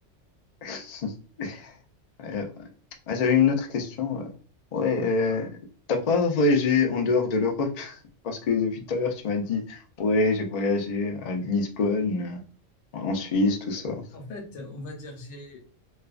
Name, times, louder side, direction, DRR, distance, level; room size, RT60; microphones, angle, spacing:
voice 1, 0.6-1.1 1.4-1.7 2.2-2.5 3.1-4.3 4.7-5.5 5.9-8.0 8.2-12.4 12.9-14.0, left 4 dB, 65° left, 2 dB, 0.4 m, -25 dB
voice 2, 14.1-15.8, left 2 dB, 90° left, 2 dB, 1.1 m, -40 dB
2.4 x 2.2 x 2.3 m, 0.40 s
omnidirectional pair, 1.3 m